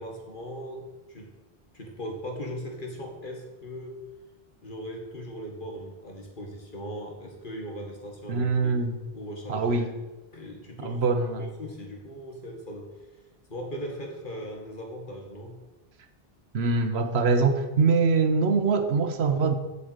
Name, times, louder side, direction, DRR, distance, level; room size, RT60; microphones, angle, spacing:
voice 1, 0.0-1.4 1.7-4.0 4.6-8.7 9.1-10.0 10.3-11.1 11.4-13.1 13.5-15.6, equal, 55° left, 1 dB, 2.0 m, -39 dB
voice 2, 8.3-8.9 9.5-9.9 10.8-11.5 16.5-19.6, right 4 dB, 90° right, 8 dB, 1.2 m, -23 dB
8.4 x 5.6 x 8.0 m, 1.1 s
omnidirectional pair, 1.1 m